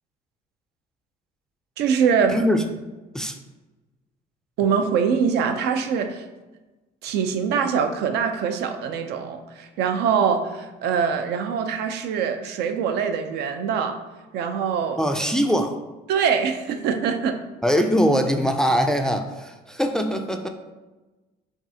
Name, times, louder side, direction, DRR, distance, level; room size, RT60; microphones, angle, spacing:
voice 1, 1.8-2.4 4.6-6.2 7.0-14.0 14.3-15.0 16.1-17.4, right 6 dB, 80° right, 7 dB, 0.5 m, -23 dB
voice 2, 2.3-2.6 3.1-3.3 15.0-15.8 17.6-20.5, equal, 5° left, 5 dB, 0.3 m, -22 dB
5.8 x 2.4 x 2.7 m, 1.1 s
cardioid pair, 110°, 17 cm